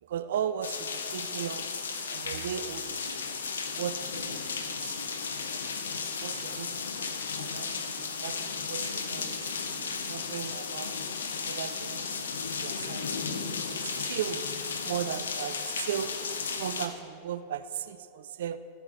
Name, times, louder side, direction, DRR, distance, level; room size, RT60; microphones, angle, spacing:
voice 1, 0.0-1.7 2.0-3.2 3.7-5.0 5.5-5.7 6.1-11.0 11.5-14.5 14.8-16.2 16.6-18.6, right 9 dB, 60° right, 13 dB, 0.4 m, -37 dB
sound 1, 0.6-16.9, left 5 dB, 70° left, 0.7 m, -34 dB
13.0 x 7.6 x 3.9 m, 2.5 s
figure-of-eight pair, 90°, 0 cm